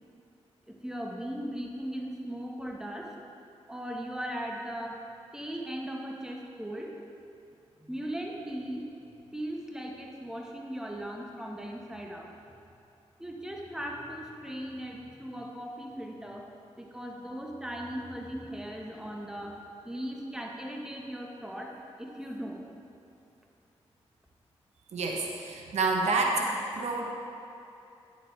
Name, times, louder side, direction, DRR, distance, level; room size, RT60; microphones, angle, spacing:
voice 1, 0.7-3.1 3.7-5.0 5.3-7.0 7.8-8.9 9.3-12.3 13.2-16.5 16.8-19.6 19.8-22.7, equal, 5° right, 0 dB, 1.3 m, -38 dB
voice 2, 24.9-27.1, right 3 dB, 70° right, 0 dB, 0.9 m, -28 dB
9.8 x 7.1 x 3.3 m, 2.8 s
supercardioid pair, 45°, 12 cm